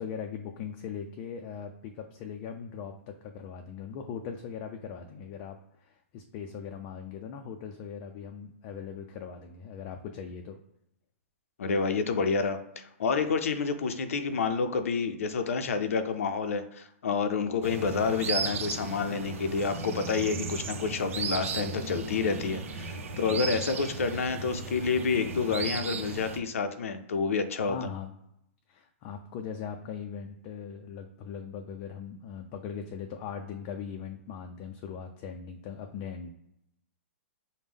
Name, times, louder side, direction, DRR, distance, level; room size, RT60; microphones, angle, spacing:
voice 1, 0.0-10.6 23.1-23.6 27.6-28.1 28.7-36.3, left 7 dB, 35° left, 4 dB, 0.4 m, -40 dB
voice 2, 11.6-27.8, left 5 dB, 85° left, 8 dB, 0.5 m, -29 dB
sound 1, 17.6-26.4, right 4 dB, 75° right, 0.7 m, -35 dB
5.1 x 2.1 x 3.5 m, 0.80 s
hypercardioid pair, 150°, 7 cm